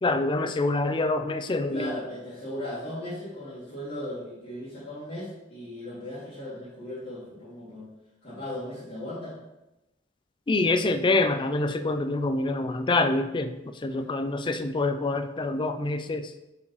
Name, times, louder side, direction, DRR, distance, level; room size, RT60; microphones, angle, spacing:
voice 1, 0.0-1.9 10.5-16.3, left 2 dB, 20° left, 9 dB, 0.4 m, -26 dB
voice 2, 1.7-7.9 8.2-9.3 13.9-14.1, left 1 dB, 40° left, -13 dB, 2.6 m, -37 dB
7.4 x 6.1 x 3.1 m, 0.96 s
head